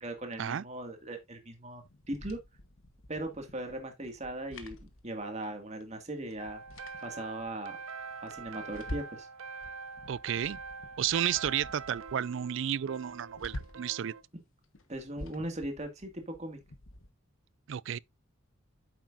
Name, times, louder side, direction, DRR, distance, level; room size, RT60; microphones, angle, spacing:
voice 1, 0.0-2.4 3.1-4.8 5.0-6.6 7.0-7.8 8.2-9.3 14.9-16.6, right 1 dB, 35° right, 2.1 m, -39 dB
sound 1, 1.9-5.6 5.8-5.9 6.3-7.5 8.0-9.3 9.6-12.2 12.5-12.6 12.9-14.0 14.6-17.1, left 1 dB, 75° left, 1.3 m, -47 dB
sound 2, 6.4-14.2, right 4 dB, 85° right, 0.8 m, -44 dB
voice 2, 10.1-10.6 11.0-14.1 17.7-18.0, right 9 dB, 60° right, 0.3 m, -32 dB
9.3 x 7.4 x 2.6 m
head